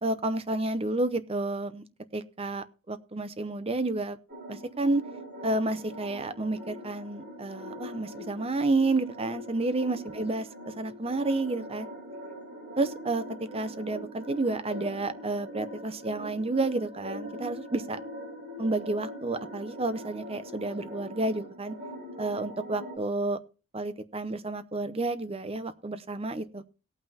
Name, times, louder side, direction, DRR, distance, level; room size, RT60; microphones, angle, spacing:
voice 1, 0.0-1.8 2.1-4.2 4.5-5.0 5.4-11.9 12.8-13.2 13.5-18.0 18.6-21.7 22.2-23.4 23.7-26.6, right 2 dB, 25° right, 12 dB, 0.7 m, -30 dB
sound 1, 4.3-23.0, equal, 50° right, 4.5 m, -42 dB
18.5 x 8.8 x 2.8 m, 0.33 s
head